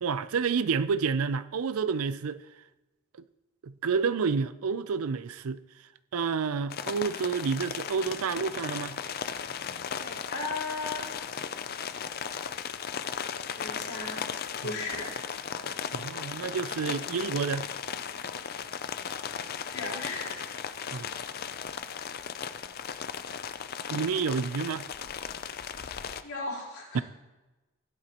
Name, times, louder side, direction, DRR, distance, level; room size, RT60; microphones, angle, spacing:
voice 1, 0.0-2.4 3.6-5.6 6.1-9.0 14.6-14.8 15.9-17.7 20.9-21.2 23.9-24.9 26.9-27.0, right 5 dB, 80° right, 0.5 m, -29 dB
sound 1, 6.7-26.2, left 7 dB, 45° left, 0.4 m, -36 dB
voice 2, 9.9-11.1 11.9-12.0 13.6-14.3 14.6-15.1 19.6-20.6 20.8-21.0 26.2-27.0, left 3 dB, 80° left, 4.2 m, -36 dB
16.0 x 11.0 x 3.0 m
head